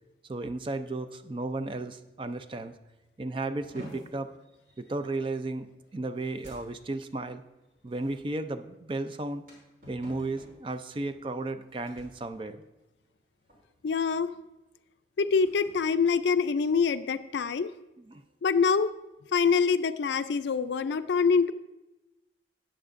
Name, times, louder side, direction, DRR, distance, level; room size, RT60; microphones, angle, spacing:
voice 1, 0.2-2.7 3.2-4.3 4.8-7.4 7.8-9.4 9.9-12.6 18.0-18.2, right 2 dB, 30° right, 9 dB, 0.4 m, -34 dB
sound 1, 3.6-13.2 13.5-13.9 14.3-14.5 15.1-17.0, left 1 dB, 50° right, 3.0 m, -52 dB
voice 2, 13.8-14.3 15.2-17.7 18.4-18.9 19.3-21.5, left 5 dB, 75° left, 12 dB, 0.4 m, -25 dB
13.5 x 8.8 x 2.5 m, 0.99 s
head